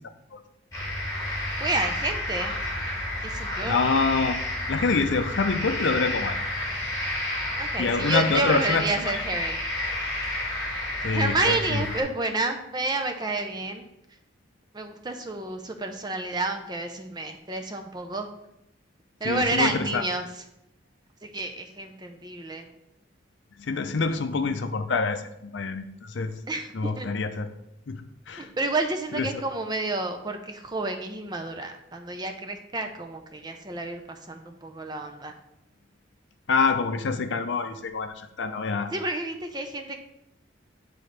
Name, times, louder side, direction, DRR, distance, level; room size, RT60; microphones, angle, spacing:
sound 1, 0.7-12.0, left 1 dB, 15° left, 1.9 m, -31 dB
voice 1, 1.6-2.6 3.2-3.8 7.6-9.6 11.1-13.8 14.7-18.3 19.2-20.4 21.2-22.7 26.5-27.1 28.4-35.3 38.9-40.0, right 2 dB, 20° right, 5 dB, 0.5 m, -30 dB
voice 2, 3.6-4.4 4.7-6.4 7.8-9.2 11.0-11.8 19.2-20.0 23.6-26.3 26.7-27.5 27.9-28.0 28.3-28.5 29.1-29.3 36.5-38.9, left 4 dB, 65° left, 8 dB, 0.5 m, -26 dB
8.8 x 3.8 x 3.2 m, 0.83 s
head